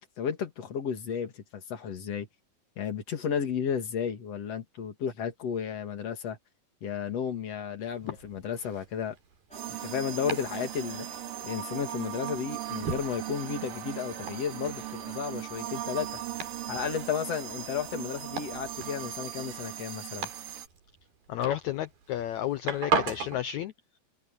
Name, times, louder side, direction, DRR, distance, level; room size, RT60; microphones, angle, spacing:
voice 1, 0.0-2.3 2.8-6.4 6.8-9.2 9.7-11.1 11.4-16.2 16.7-20.3, left 7 dB, 50° left, 3.0 m, -33 dB
Domestic sounds home sounds, 7.9-23.4, right 5 dB, 90° right, 6.0 m, -39 dB
sound 1, 9.5-19.8, equal, ahead, 4.0 m, -53 dB
sound 2, 9.5-20.7, right 13 dB, 75° right, 3.4 m, -38 dB
voice 2, 21.3-24.0, left 12 dB, 85° left, 1.6 m, -32 dB
omnidirectional pair, 4.1 m